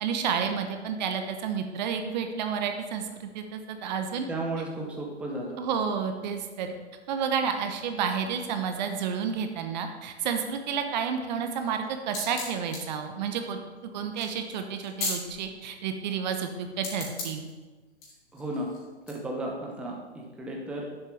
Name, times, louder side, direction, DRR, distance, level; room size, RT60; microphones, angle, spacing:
voice 1, 0.0-4.3 5.6-6.7 7.1-13.6 13.9-17.5, right 7 dB, 40° right, 6 dB, 1.0 m, -30 dB
voice 2, 4.3-5.6 18.3-18.7 19.1-20.8, right 1 dB, 5° right, -2 dB, 0.9 m, -34 dB
sound 1, 11.7-15.5 16.8-17.5 18.0-19.1, left 3 dB, 35° left, 3.0 m, -37 dB
10.0 x 7.4 x 3.3 m, 1.3 s
figure-of-eight pair, 125°, 34 cm